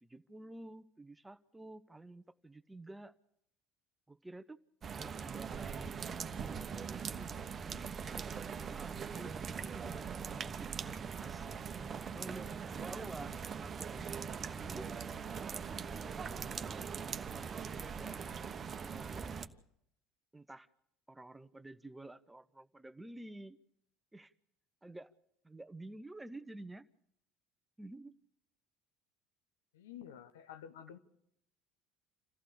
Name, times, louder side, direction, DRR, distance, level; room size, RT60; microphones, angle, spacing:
voice 1, 0.0-3.1 4.1-4.6 4.8-7.8 8.3-11.5 12.0-13.3 13.9-14.2 14.5-14.9 17.6-18.2 18.8-19.4 20.3-20.7 21.1-23.6 24.1-24.3 24.8-25.1 25.4-26.9 27.8-28.1, right 2 dB, 10° right, 14 dB, 0.9 m, -51 dB
sound 1, 4.8-19.5, right 6 dB, 35° right, 1.1 m, -41 dB
voice 2, 29.7-31.0, left 9 dB, 80° left, 12 dB, 1.0 m, -51 dB
27.5 x 15.0 x 6.9 m, 0.77 s
hypercardioid pair, 65°, 0 cm